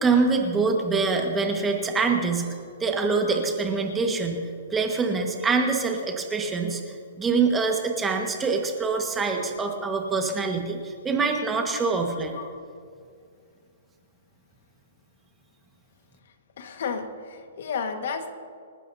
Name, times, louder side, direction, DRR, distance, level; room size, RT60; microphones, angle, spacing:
voice 1, 0.0-2.5 2.8-6.8 7.2-12.3, right 4 dB, 10° right, 2 dB, 1.6 m, -25 dB
voice 2, 16.6-18.3, left 5 dB, 65° left, 6 dB, 1.7 m, -32 dB
28.5 x 12.0 x 2.8 m, 2.2 s
hypercardioid pair, 150°, 0 cm